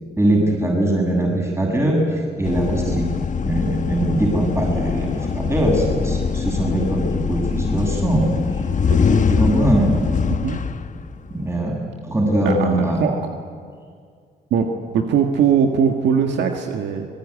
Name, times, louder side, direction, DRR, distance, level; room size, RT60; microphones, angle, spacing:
voice 1, 0.2-3.1 3.4-8.3 8.5-8.6 9.3-10.0 11.3-13.0, right 1 dB, 15° right, -1 dB, 7.4 m, -21 dB
sound 1, 2.4-11.5, left 6 dB, 45° left, 1.1 m, -23 dB
voice 2, 8.8-9.7 10.3-10.6 12.4-13.2 14.5-17.1, right 7 dB, 80° right, 4 dB, 1.6 m, -21 dB
24.0 x 20.5 x 9.8 m, 2.1 s
cardioid pair, 70°, 18 cm